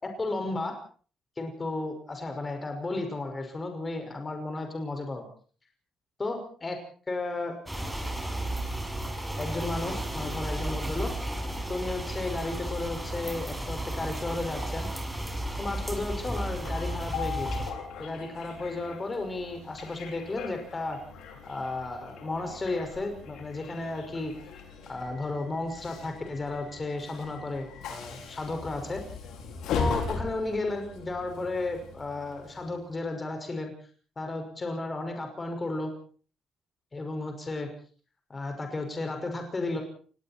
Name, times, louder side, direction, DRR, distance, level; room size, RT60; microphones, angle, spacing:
voice 1, 0.0-0.7 1.4-5.3 6.2-6.8 7.1-7.5 9.4-11.1 11.7-14.9 15.6-17.7 18.0-21.0 21.4-24.3 24.9-29.0 29.7-33.7 34.2-35.9 36.9-37.7 38.3-39.8, left 2 dB, 30° left, 5 dB, 5.8 m, -33 dB
sound 1, 7.7-17.7, right 1 dB, 5° right, 6.3 m, -33 dB
Train, 15.7-32.9, left 5 dB, 85° left, 5.5 m, -39 dB
29.0 x 19.5 x 4.5 m, 0.43 s
cardioid pair, 90°, 0 cm